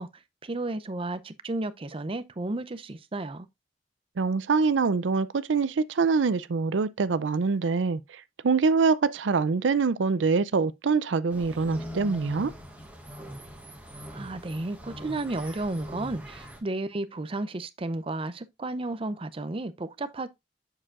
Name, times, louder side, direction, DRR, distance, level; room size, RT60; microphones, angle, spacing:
voice 1, 0.0-3.5 14.1-20.3, right 2 dB, 30° right, 0.5 m, -33 dB
voice 2, 4.2-12.5, right 4 dB, 85° right, 0.5 m, -25 dB
sound 1, 11.3-16.6, equal, 10° right, 1.5 m, -42 dB
7.4 x 6.5 x 2.4 m
head